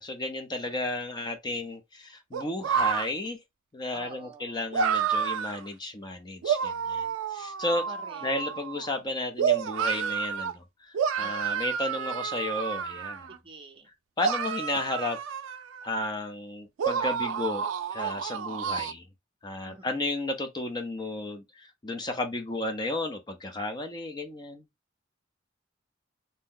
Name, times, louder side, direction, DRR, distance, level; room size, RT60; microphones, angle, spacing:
voice 1, 0.0-3.4 3.7-7.9 8.2-13.3 14.2-15.2 15.8-17.6 17.9-19.1 19.4-24.6, left 2 dB, 25° left, 0.5 m, -33 dB
voice 2, 0.6-0.9 3.9-4.7 7.9-8.3 11.2-11.7 13.3-13.9 19.7-20.1, right 3 dB, 25° right, 0.5 m, -47 dB
sound 1, 2.3-3.1 4.7-5.6 6.4-9.0 9.4-10.5 10.9-13.4 14.2-16.1 16.8-18.9, right 7 dB, 90° right, 0.4 m, -29 dB
2.7 x 2.1 x 3.6 m
head